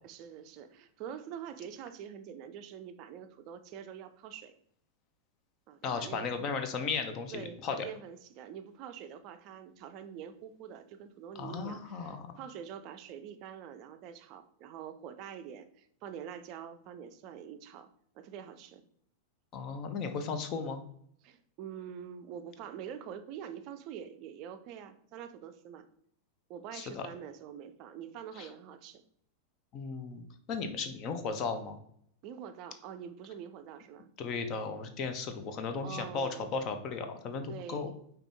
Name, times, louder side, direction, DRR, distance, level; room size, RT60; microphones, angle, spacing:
voice 1, 0.0-4.5 5.7-6.3 7.3-17.9 18.1-18.8 21.2-25.9 26.5-29.0 32.2-34.1 35.8-36.6 37.5-38.0, right 8 dB, 40° right, 9 dB, 0.4 m, -45 dB
voice 2, 5.8-7.9 11.3-12.4 19.5-20.8 26.7-27.1 28.4-28.5 29.7-31.8 34.2-37.9, left 5 dB, 35° left, 7 dB, 0.6 m, -36 dB
5.1 x 2.9 x 3.4 m, 0.66 s
figure-of-eight pair, 90°, 0 cm